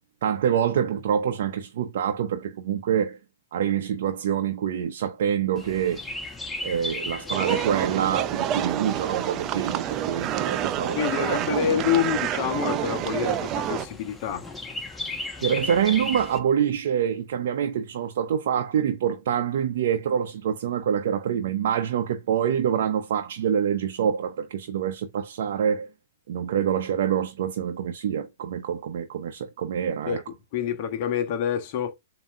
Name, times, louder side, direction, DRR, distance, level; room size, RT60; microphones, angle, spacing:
voice 1, 0.2-3.2 3.5-6.0 6.6-11.4 15.4-25.9 26.3-30.2, right 8 dB, 60° right, 0.8 m, -26 dB
Chirp tweet, 5.6-16.4, left 2 dB, 10° left, 1.2 m, -37 dB
sound 1, 7.3-13.9, right 11 dB, 30° right, 0.6 m, -28 dB
voice 2, 10.9-14.4 30.1-30.2 30.5-31.9, left 9 dB, 45° left, 1.3 m, -27 dB
7.2 x 2.9 x 2.5 m
hypercardioid pair, 120°, 0 cm